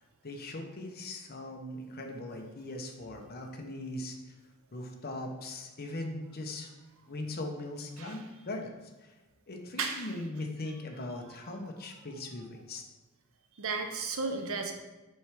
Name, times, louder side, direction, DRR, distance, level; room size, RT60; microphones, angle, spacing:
voice 1, 0.2-4.2 4.7-6.7 7.1-8.7 9.5-12.8, left 2 dB, 45° left, 3 dB, 0.9 m, -39 dB
voice 2, 9.8-10.1 13.6-14.7, right 4 dB, 65° right, 5 dB, 0.8 m, -34 dB
6.3 x 3.3 x 4.9 m, 1.1 s
head